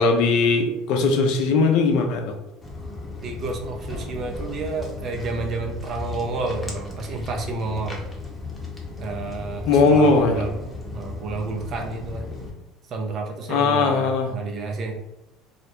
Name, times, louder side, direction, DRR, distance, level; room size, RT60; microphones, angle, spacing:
voice 1, 0.0-2.3 9.7-10.3 13.5-14.3, left 4 dB, 65° left, 4 dB, 0.5 m, -19 dB
Walk footsteps, 2.6-12.5, left 3 dB, 15° left, 0.8 m, -35 dB
voice 2, 3.2-8.0 9.0-10.6 10.9-12.3 12.9-14.9, right 3 dB, 50° right, 2 dB, 0.5 m, -30 dB
2.4 x 2.0 x 2.9 m, 0.94 s
hypercardioid pair, 80°, 0 cm